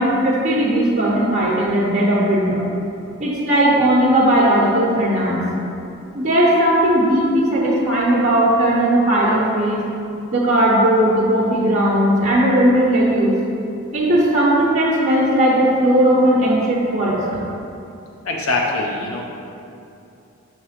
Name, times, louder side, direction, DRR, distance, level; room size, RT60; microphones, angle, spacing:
voice 1, 0.0-2.6 3.2-5.4 6.1-9.8 10.3-13.4 13.9-17.2, right 1 dB, 35° right, -7 dB, 0.8 m, -17 dB
voice 2, 18.2-19.2, left 2 dB, 90° left, -1 dB, 0.8 m, -22 dB
5.9 x 3.3 x 5.7 m, 2.7 s
head